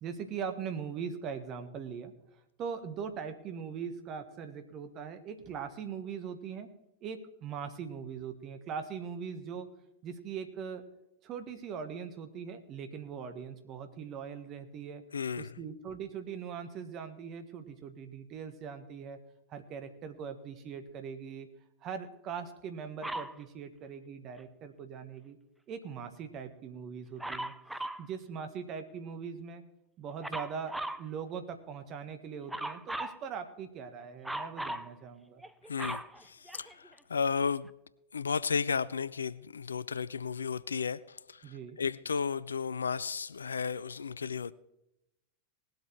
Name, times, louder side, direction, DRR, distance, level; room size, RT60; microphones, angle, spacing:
voice 1, 0.0-6.7 7.0-9.7 10.0-10.9 11.2-15.0 15.4-19.2 19.5-21.5 21.8-25.4 25.7-27.5 28.0-29.6 30.0-35.4 41.4-41.8, right 6 dB, 35° right, 1.5 m, -41 dB
voice 2, 15.1-15.6 35.7-37.7 38.1-44.5, left 6 dB, 70° left, 0.4 m, -34 dB
Dog, 23.0-23.4 27.2-28.1 30.2-31.0 32.5-33.2 34.2-34.9 35.4-36.9 37.7-37.8, right 1 dB, 5° right, 0.6 m, -38 dB
19.0 x 7.9 x 4.6 m
figure-of-eight pair, 90°, 0 cm